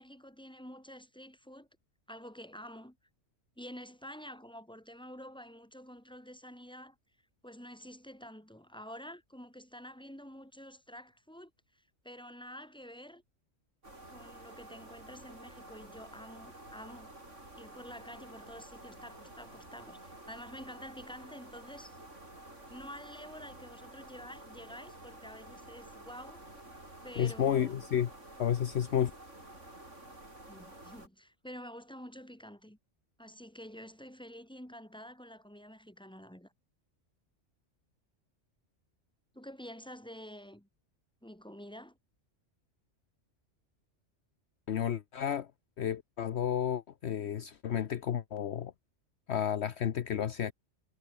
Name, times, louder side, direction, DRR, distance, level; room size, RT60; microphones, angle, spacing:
voice 1, 0.0-1.7 2.1-3.0 3.6-7.0 7.4-13.2 14.1-17.1 17.6-22.0 22.7-26.5 27.0-27.8 30.5-32.8 33.2-36.5 39.3-40.7 41.2-42.0, equal, 5° left, 3.8 m, -49 dB
sound 1, 13.8-31.1, right 1 dB, 80° right, 7.3 m, -51 dB
voice 2, 27.2-28.1 28.4-29.1 44.7-45.5 45.8-48.7 49.3-50.5, left 9 dB, 65° left, 1.1 m, -31 dB
omnidirectional pair, 1.3 m